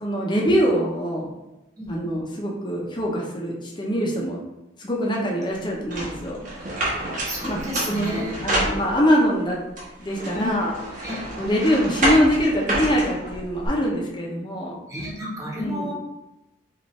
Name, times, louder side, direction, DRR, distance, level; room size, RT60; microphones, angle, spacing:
voice 1, 0.0-1.3 1.9-4.4 4.8-6.4 7.4-7.6 7.9-9.6 10.0-10.8 11.4-14.8 15.6-15.9, equal, 25° left, -2 dB, 0.7 m, -23 dB
sound 1, 5.9-9.3 9.8-13.7, right 1 dB, 40° right, 1.2 m, -28 dB
voice 2, 7.2-8.4 10.3-10.5 11.0-11.2 14.9-15.9, equal, 15° right, -5 dB, 1.1 m, -32 dB
5.2 x 2.5 x 3.2 m, 0.97 s
head